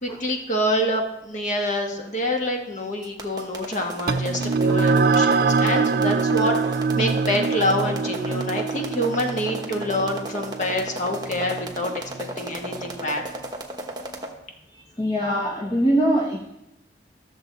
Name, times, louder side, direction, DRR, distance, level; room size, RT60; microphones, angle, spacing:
voice 1, 0.0-11.9 12.4-13.2, left 1 dB, 45° left, 2 dB, 1.4 m, -26 dB
sound 1, 3.0-14.3, right 2 dB, 25° right, 1.2 m, -35 dB
sound 2, 4.1-12.9, right 4 dB, 60° right, 0.4 m, -24 dB
voice 2, 14.7-16.5, right 1 dB, 25° left, -1 dB, 0.9 m, -23 dB
13.5 x 6.9 x 4.0 m, 0.91 s
head